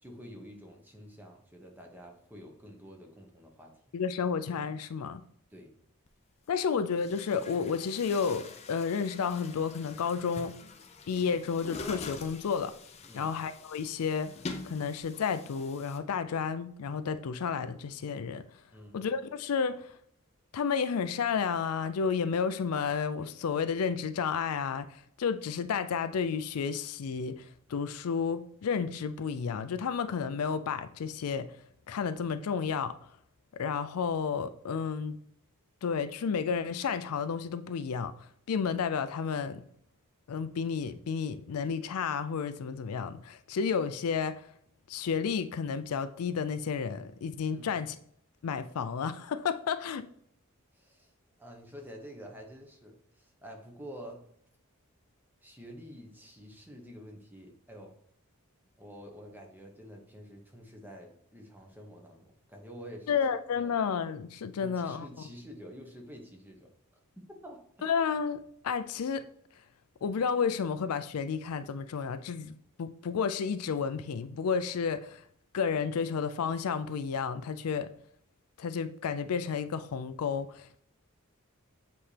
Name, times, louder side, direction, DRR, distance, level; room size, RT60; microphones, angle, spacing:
voice 1, 0.0-3.7 5.5-5.7 13.1-13.4 18.7-19.0 47.5-47.8 50.7-51.1 51.4-54.2 55.4-57.9 58.8-63.2 63.5-63.7 64.6-66.7 67.2-67.6, equal, 10° right, 1.0 m, -48 dB
voice 2, 3.9-5.2 6.5-10.5 11.1-12.7 13.1-14.3 14.6-18.4 18.9-19.9 20.5-27.4 27.7-31.5 31.9-32.9 33.6-35.2 35.8-38.1 38.5-39.6 40.3-44.4 44.9-48.0 48.4-50.0 63.1-65.1 67.8-69.2 70.0-75.2 75.5-77.9 78.6-80.8, left 6 dB, 80° left, 0.4 m, -31 dB
Chatter / Gurgling / Tap, 6.1-6.2 6.9-16.0, left 3 dB, 30° left, 0.5 m, -45 dB
7.7 x 4.2 x 3.3 m
head